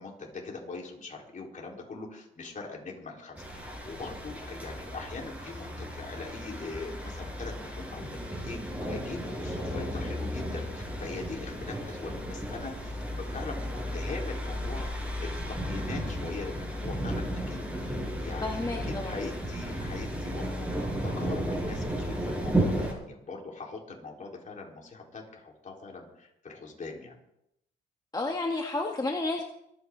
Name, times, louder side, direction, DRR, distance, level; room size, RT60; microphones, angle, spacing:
voice 1, 0.0-17.9 18.2-27.2, left 3 dB, 40° left, -1 dB, 4.2 m, -42 dB
sound 1, 3.4-22.9, equal, 5° right, 5.3 m, -34 dB
voice 2, 18.4-19.1 28.1-29.4, left 2 dB, 20° left, 1 dB, 1.5 m, -31 dB
26.0 x 9.2 x 3.9 m, 0.79 s
cardioid pair, 90°, 20 cm